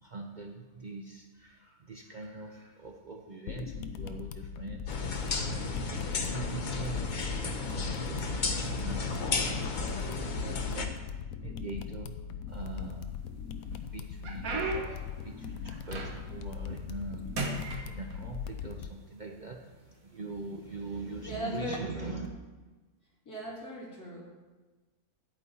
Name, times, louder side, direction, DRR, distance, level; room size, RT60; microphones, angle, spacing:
voice 1, 0.0-12.2 12.5-13.1 13.8-22.3, right 3 dB, 50° right, 2 dB, 0.6 m, -43 dB
sound 1, 3.5-18.9, left 7 dB, 75° left, 1.0 m, -40 dB
sound 2, 4.9-10.9, left 4 dB, 40° left, 0.8 m, -33 dB
sound 3, 12.5-13.2 13.7-16.5 16.8-17.1 17.4-18.6 19.4-19.5 20.2-20.4 21.6-21.8, right 3 dB, 70° right, 1.6 m, -37 dB
voice 2, 21.2-22.3 23.3-24.2, equal, 90° left, -5 dB, 3.3 m, -39 dB
10.0 x 9.0 x 4.1 m, 1.3 s
omnidirectional pair, 1.6 m